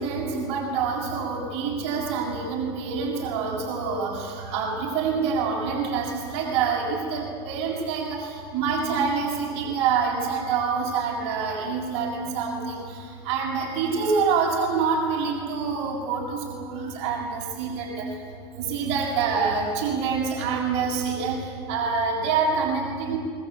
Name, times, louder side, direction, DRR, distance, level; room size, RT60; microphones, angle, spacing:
voice 1, 0.0-13.0 13.2-18.0 18.5-21.4 21.7-23.2, right 5 dB, 60° right, -3 dB, 6.6 m, -26 dB
27.5 x 22.0 x 8.5 m, 2.1 s
supercardioid pair, 125°, 14 cm